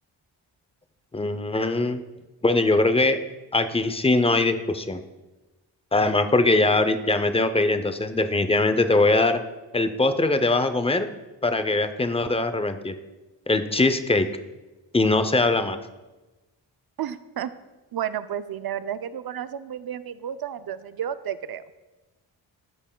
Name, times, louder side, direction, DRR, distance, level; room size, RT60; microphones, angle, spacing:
voice 1, 1.1-2.0 2.4-3.2 3.5-5.0 5.9-9.4 9.7-11.1 11.4-13.0 13.5-14.3 14.9-15.8, left 2 dB, 15° left, 10 dB, 0.5 m, -21 dB
voice 2, 17.0-17.5 17.9-21.6, right 9 dB, 50° right, 13 dB, 0.5 m, -32 dB
14.0 x 5.1 x 2.2 m, 1.1 s
cardioid pair, 60°, 47 cm